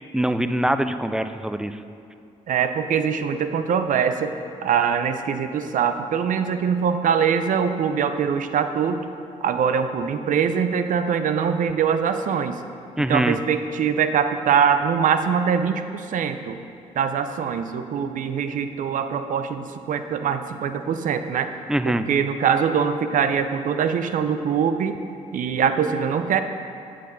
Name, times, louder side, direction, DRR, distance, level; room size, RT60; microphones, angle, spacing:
voice 1, 0.1-1.8 13.0-13.4 21.7-22.1, right 1 dB, 5° right, 10 dB, 0.4 m, -23 dB
voice 2, 2.5-4.3 4.6-9.0 9.4-12.6 13.1-16.6 17.0-21.5 21.8-25.0 25.3-26.4, right 7 dB, 65° right, 9 dB, 0.6 m, -23 dB
8.3 x 7.7 x 4.0 m, 2.5 s
supercardioid pair, 55°, 15 cm